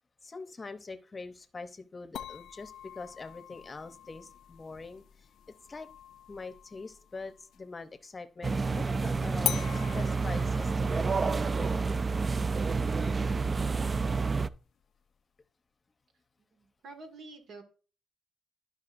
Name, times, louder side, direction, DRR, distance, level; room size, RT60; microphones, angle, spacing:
voice 1, 0.2-5.3 5.7-5.9 6.3-11.8, left 3 dB, 30° left, 10 dB, 0.7 m, -44 dB
sound 1, 2.2-7.7 9.4-14.4, left 10 dB, 85° left, 0.3 m, -42 dB
sound 2, 8.4-14.5, right 4 dB, 35° right, 0.3 m, -29 dB
voice 2, 16.4-17.6, right 3 dB, 75° right, 5 dB, 1.8 m, -48 dB
12.5 x 5.2 x 2.5 m, 0.37 s
cardioid pair, 95°, 0 cm